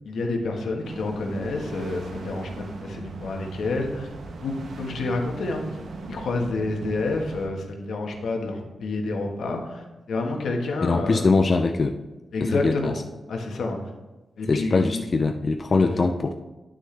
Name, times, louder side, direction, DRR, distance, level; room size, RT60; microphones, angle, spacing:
voice 1, 0.0-4.1 4.4-5.6 6.1-11.3 12.3-13.0 13.3-13.8 14.4-15.0 15.8-16.1, left 2 dB, 75° left, 2 dB, 1.3 m, -29 dB
sound 1, 0.8-7.5, right 3 dB, 65° right, 1.0 m, -39 dB
voice 2, 10.8-12.0 12.4-12.9 14.5-16.3, left 3 dB, 35° left, 6 dB, 0.3 m, -22 dB
9.9 x 6.3 x 3.3 m, 1.1 s
wide cardioid pair, 150°, 0 cm